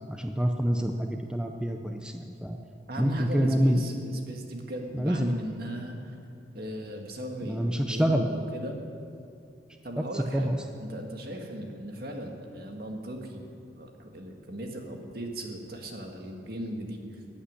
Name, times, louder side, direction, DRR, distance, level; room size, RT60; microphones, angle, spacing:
voice 1, 0.1-2.6 3.0-3.8 4.9-5.3 7.5-8.3 10.1-10.6, equal, 5° right, 4 dB, 0.6 m, -27 dB
voice 2, 2.9-6.2 6.5-8.8 9.8-17.4, right 1 dB, 55° right, 2 dB, 1.9 m, -38 dB
14.5 x 8.6 x 9.8 m, 2.5 s
head